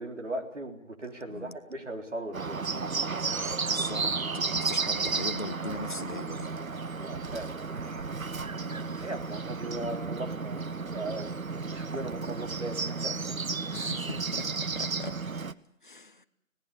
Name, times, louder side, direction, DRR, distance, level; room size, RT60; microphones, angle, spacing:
voice 1, 0.0-2.7 7.0-8.1 9.0-13.4, right 2 dB, 60° right, 3.8 m, -38 dB
Bird, 2.3-15.5, right 4 dB, 85° right, 1.1 m, -33 dB
voice 2, 3.7-6.5 8.6-9.0 13.7-15.2 15.8-16.3, left 3 dB, 35° left, 0.9 m, -40 dB
25.0 x 18.0 x 8.6 m
figure-of-eight pair, 165°, 40 cm